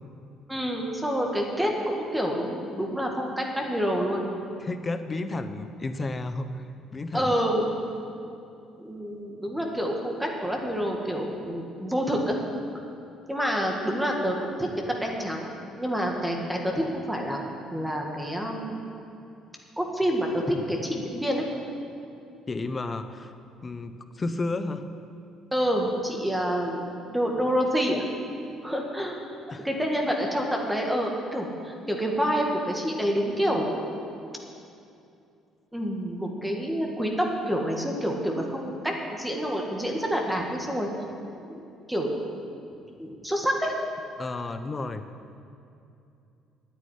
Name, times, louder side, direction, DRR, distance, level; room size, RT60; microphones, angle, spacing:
voice 1, 0.5-4.3 7.1-7.8 8.8-12.4 13.3-15.5 15.8-17.4 17.7-18.8 19.8-21.4 25.5-26.8 27.1-28.0 28.6-29.2 29.6-33.7 35.7-40.9 41.5-42.2 43.0-43.7, equal, 5° right, 0 dB, 2.1 m, -28 dB
voice 2, 4.6-6.6 6.9-7.3 22.5-23.3 23.6-24.9 29.5-29.7 44.2-45.0, left 2 dB, 30° left, 9 dB, 0.9 m, -32 dB
9.8 x 9.3 x 9.6 m, 2.6 s
cardioid pair, 85°, 0 cm